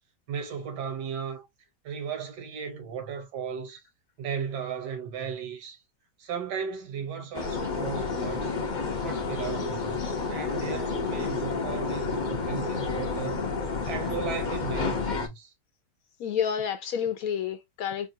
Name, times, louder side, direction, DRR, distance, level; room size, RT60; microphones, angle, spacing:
voice 1, 0.3-1.5 1.8-3.8 4.2-5.8 6.2-8.5 9.0-13.4 13.9-15.5, right 7 dB, 80° right, 1.7 m, -36 dB
sound 1, 7.3-15.3, left 4 dB, 50° left, 0.5 m, -30 dB
voice 2, 16.2-18.1, left 8 dB, 70° left, 0.9 m, -29 dB
4.3 x 2.3 x 2.6 m
omnidirectional pair, 1.8 m